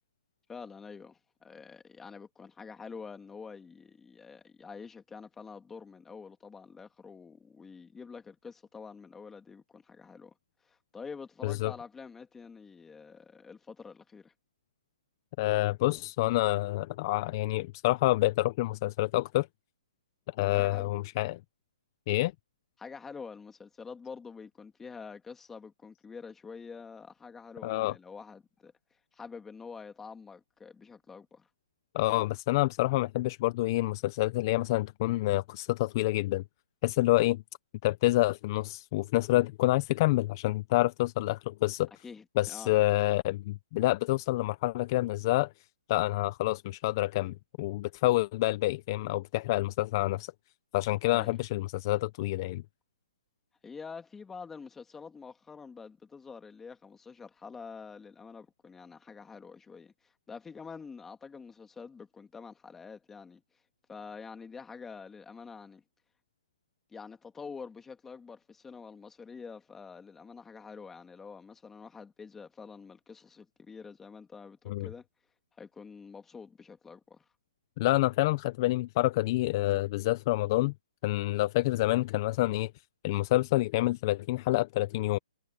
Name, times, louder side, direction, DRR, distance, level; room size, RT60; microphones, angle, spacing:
voice 1, 0.5-10.3 10.6-14.3 20.5-20.9 22.8-28.7 29.1-31.5 42.0-42.7 51.0-51.4 53.6-63.4 63.9-65.8 66.9-75.1 75.6-77.2, left 5 dB, 10° left, 2.4 m, -47 dB
voice 2, 15.4-19.5 20.4-21.4 22.1-22.3 27.6-27.9 31.9-36.4 36.8-37.4 37.8-41.9 42.4-45.5 45.9-50.3 50.7-52.6 74.7-74.9 77.8-80.7 81.0-82.7 83.0-85.2, left 18 dB, 35° left, 0.7 m, -27 dB
hypercardioid pair, 155°, 3 cm